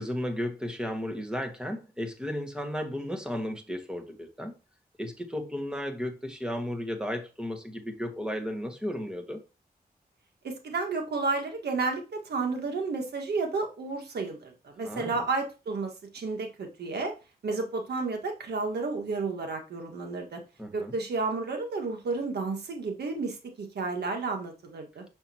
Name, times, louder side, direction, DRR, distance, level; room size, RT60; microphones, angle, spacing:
voice 1, 0.0-4.5 5.0-9.4 14.8-15.2 20.6-20.9, equal, 5° right, 1.8 m, -34 dB
voice 2, 10.4-17.1 17.4-20.4 20.7-25.0, right 3 dB, 85° right, 1.7 m, -32 dB
6.3 x 6.3 x 2.9 m
cardioid pair, 70°, 17 cm